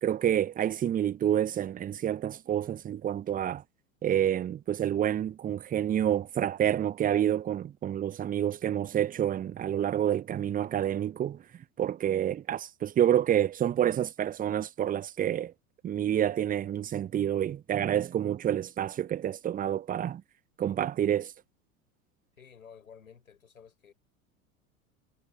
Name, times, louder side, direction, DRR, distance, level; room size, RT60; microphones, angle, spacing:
voice 1, 0.0-3.6 4.0-11.4 11.8-15.5 15.8-20.2 20.6-21.3, right 10 dB, 20° right, 0.9 m, -28 dB
voice 2, 22.4-23.9, left 7 dB, 75° left, 5.6 m, -53 dB
figure-of-eight pair, 80°, 42 cm